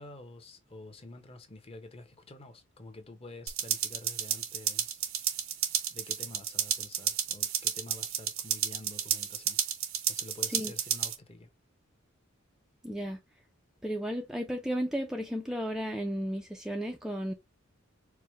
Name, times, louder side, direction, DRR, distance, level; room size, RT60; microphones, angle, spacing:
voice 1, 0.0-5.0 5.9-9.6 10.1-11.5, left 2 dB, 30° left, 0.8 m, -48 dB
sound 1, 3.5-11.1, right 10 dB, 85° right, 0.8 m, -32 dB
voice 2, 12.8-13.2 13.8-17.3, equal, 5° right, 0.4 m, -33 dB
4.6 x 2.1 x 3.1 m
head